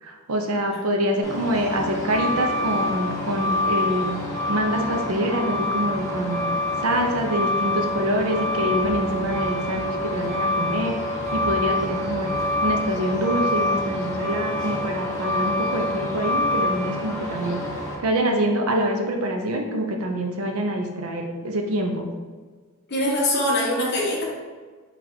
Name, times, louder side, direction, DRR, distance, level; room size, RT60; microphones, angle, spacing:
voice 1, 0.0-6.4 6.8-12.3 12.6-17.6 18.0-22.1, equal, 70° right, 2 dB, 0.6 m, -25 dB
Truck, 1.2-18.0, left 1 dB, 15° left, 1.1 m, -26 dB
voice 2, 22.9-24.2, left 1 dB, 50° left, -3 dB, 1.0 m, -23 dB
4.0 x 2.5 x 4.4 m, 1.4 s
head